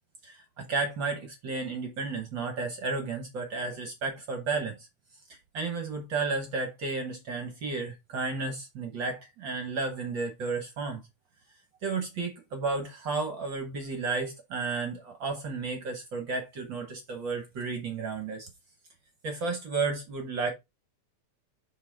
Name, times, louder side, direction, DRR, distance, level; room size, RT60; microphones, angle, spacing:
voice 1, 0.2-4.9 5.3-11.0 11.8-18.5 19.2-20.5, right 4 dB, 55° right, 1.4 m, -33 dB
5.6 x 5.1 x 3.9 m
omnidirectional pair, 3.4 m